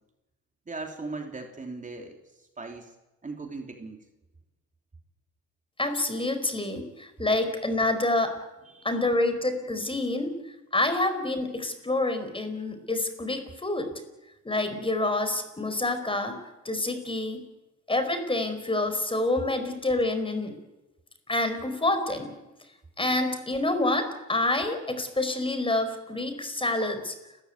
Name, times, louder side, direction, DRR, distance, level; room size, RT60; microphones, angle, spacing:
voice 1, 0.7-2.9 3.2-4.0 8.7-8.9, right 3 dB, 25° right, 4 dB, 3.1 m, -39 dB
voice 2, 5.8-8.3 8.8-10.3 10.7-13.9 14.4-16.4 16.6-17.4 17.9-20.5 21.3-22.4 23.0-27.1, left 2 dB, 15° left, 8 dB, 4.9 m, -27 dB
30.0 x 14.5 x 9.5 m, 1.0 s
cardioid pair, 90°, 30 cm